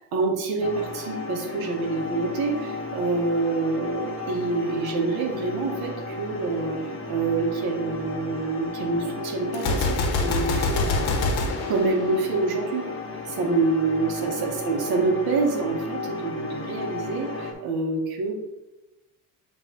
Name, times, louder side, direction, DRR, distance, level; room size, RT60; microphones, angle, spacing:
voice 1, 0.1-11.1 11.7-12.9 13.2-18.3, right 3 dB, 65° right, 2 dB, 1.4 m, -27 dB
sound 1, 0.6-17.5, left 3 dB, 35° left, 1.1 m, -34 dB
Gunshot gunfire, 9.5-12.6, left 3 dB, 75° left, 1.2 m, -26 dB
9.5 x 3.4 x 2.9 m, 1.0 s
cardioid pair, 90°, 39 cm